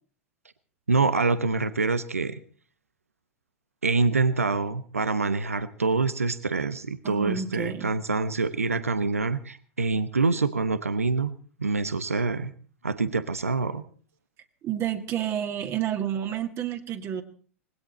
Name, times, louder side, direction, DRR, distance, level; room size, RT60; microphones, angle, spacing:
voice 1, 0.9-2.4 3.8-11.3 11.6-12.5 12.8-13.8, right 3 dB, 85° right, 14 dB, 1.0 m, -26 dB
voice 2, 7.0-7.9 14.6-17.2, right 10 dB, 35° right, 5 dB, 2.1 m, -30 dB
20.0 x 17.0 x 4.2 m, 0.42 s
figure-of-eight pair, 90°, 7 cm